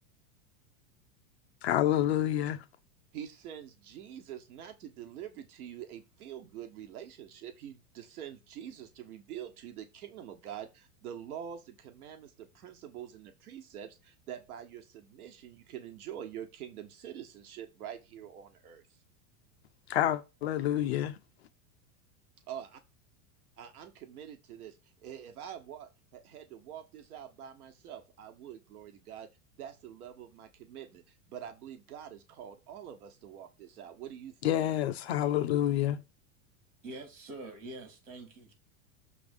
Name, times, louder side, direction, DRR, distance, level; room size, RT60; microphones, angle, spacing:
voice 1, 1.6-2.6 19.9-21.2 34.4-36.0, left 12 dB, 45° left, 0.5 m, -28 dB
voice 2, 3.1-18.8 22.5-22.7 23.6-29.3 29.6-34.5, right 9 dB, 75° right, 1.3 m, -45 dB
voice 3, 36.8-38.5, right 2 dB, 55° right, 3.1 m, -45 dB
6.9 x 3.4 x 5.1 m
supercardioid pair, 175°, 44 cm